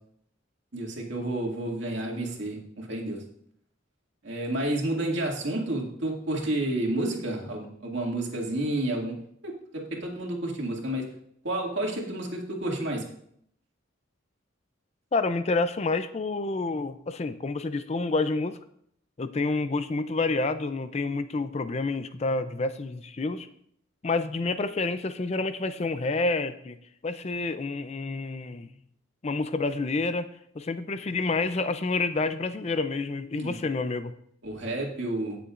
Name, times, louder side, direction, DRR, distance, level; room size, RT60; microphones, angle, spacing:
voice 1, 0.7-3.2 4.2-9.1 9.4-11.0 11.4-13.0 33.3-33.6 34.4-35.4, right 1 dB, 65° right, -1 dB, 2.2 m, -30 dB
voice 2, 15.1-18.6 19.2-23.5 24.0-26.8 27.0-28.7 29.2-30.3 30.6-34.1, left 3 dB, 35° left, 11 dB, 0.4 m, -28 dB
16.5 x 6.9 x 2.5 m, 0.69 s
head